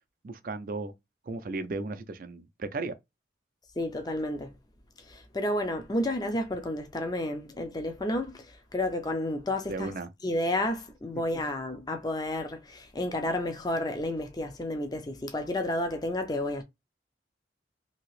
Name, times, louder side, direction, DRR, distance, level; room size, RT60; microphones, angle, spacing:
voice 1, 0.2-0.9 1.3-2.9 9.7-10.1, right 3 dB, 50° right, 0.4 m, -35 dB
voice 2, 3.8-4.5 5.1-10.0 10.2-16.6, left 1 dB, 20° left, 0.5 m, -31 dB
2.8 x 2.8 x 3.1 m
head